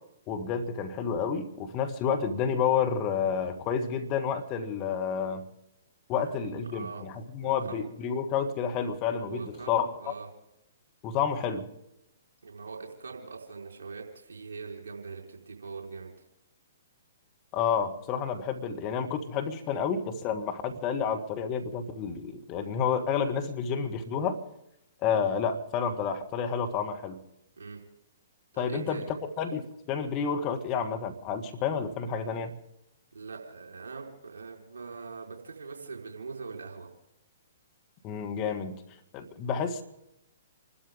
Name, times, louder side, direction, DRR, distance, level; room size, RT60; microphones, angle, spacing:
voice 1, 0.3-5.4 6.1-10.1 11.0-11.7 17.5-24.4 25.0-27.2 28.6-32.5 38.0-38.8 39.1-39.8, left 7 dB, 30° left, 5 dB, 2.0 m, -30 dB
voice 2, 6.1-7.0 7.4-7.9 9.3-9.7 10.0-10.3 12.4-16.1 27.6-27.8 28.5-29.1 33.1-36.9, right 4 dB, 65° right, 1 dB, 4.6 m, -42 dB
29.5 x 13.0 x 3.7 m, 0.84 s
figure-of-eight pair, 120°, 0 cm